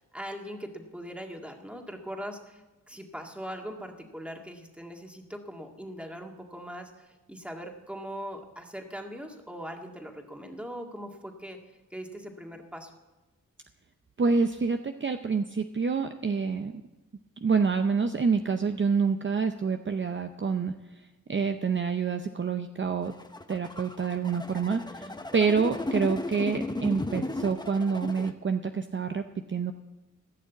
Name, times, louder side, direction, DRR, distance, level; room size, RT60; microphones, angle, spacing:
voice 1, 0.1-11.6 11.9-12.9 25.0-25.2, equal, 5° right, 2 dB, 1.9 m, -41 dB
voice 2, 14.2-16.8 17.4-20.7 21.3-23.1 23.5-29.7, right 5 dB, 35° right, 7 dB, 0.6 m, -27 dB
sound 1, 23.0-28.3, left 2 dB, 15° left, 1.0 m, -35 dB
15.0 x 6.3 x 8.3 m, 1.1 s
cardioid pair, 55°, 32 cm